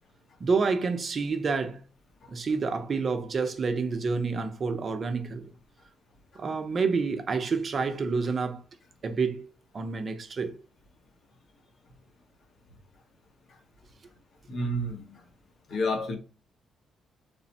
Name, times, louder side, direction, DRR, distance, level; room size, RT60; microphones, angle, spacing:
voice 1, 0.4-1.8 2.3-5.5 6.4-8.6 9.0-9.5 9.7-10.6, right 4 dB, 45° right, 0.5 m, -28 dB
voice 2, 14.5-15.2 15.7-16.2, left 1 dB, 55° left, 0.8 m, -30 dB
3.2 x 2.0 x 2.6 m
cardioid pair, 90°, 0 cm